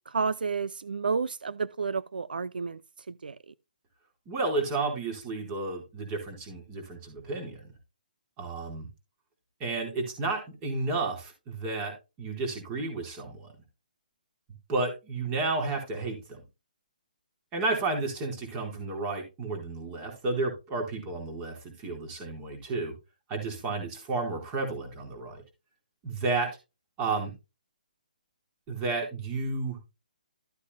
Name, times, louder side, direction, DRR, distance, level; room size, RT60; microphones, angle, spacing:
voice 1, 0.1-2.8 3.1-3.4, right 5 dB, 85° right, 0.5 m, -31 dB
voice 2, 4.3-7.6 8.4-8.9 9.6-13.5 14.7-16.4 17.5-22.9 23.3-25.4 26.0-26.5 27.0-27.3 28.7-29.8, right 3 dB, 20° right, 4.1 m, -32 dB
13.5 x 8.1 x 2.2 m
hypercardioid pair, 155°, 5 cm